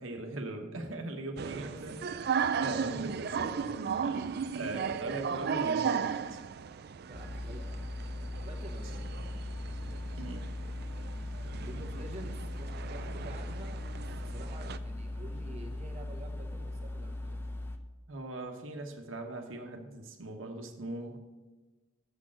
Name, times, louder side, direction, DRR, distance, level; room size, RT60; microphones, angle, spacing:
voice 1, 0.0-2.0 2.6-6.4 10.2-10.5 18.1-21.2, right 2 dB, 85° right, 3 dB, 1.1 m, -40 dB
voice 2, 1.3-2.3 7.0-9.5 11.6-17.4, right 2 dB, 35° right, 1 dB, 1.0 m, -49 dB
sound 1, 1.4-14.8, right 6 dB, 55° right, 0.4 m, -36 dB
sound 2, 7.1-17.8, left 1 dB, 10° left, 0.6 m, -39 dB
7.2 x 6.3 x 7.6 m, 1.2 s
head